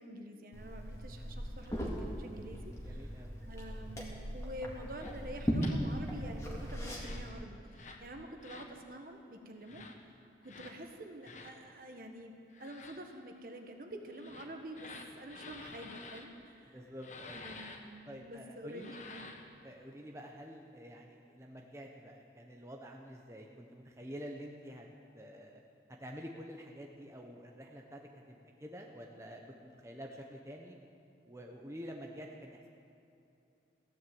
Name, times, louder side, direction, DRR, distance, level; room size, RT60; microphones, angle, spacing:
voice 1, 0.0-9.8 10.1-12.3 12.6-14.9 15.2-16.9 17.3-19.3, right 1 dB, 50° right, 4 dB, 1.4 m, -48 dB
Liquid, 0.5-7.3, equal, 15° left, 2.1 m, -38 dB
voice 2, 2.9-3.3 16.7-17.6 18.1-18.9 19.6-24.9 25.1-25.6 26.0-28.0 28.3-30.8 31.3-32.6, equal, 15° right, 1 dB, 0.9 m, -48 dB
sound 1, 5.0-5.1 5.6-5.8 6.9-7.3 7.7-8.0 8.4-8.7 9.6-9.9 10.4-10.8 11.2-11.5 12.5-13.0 14.1-16.3 17.0-17.8 18.7-19.5, left 3 dB, 40° left, 1.2 m, -50 dB
16.0 x 10.5 x 7.8 m, 2.6 s
head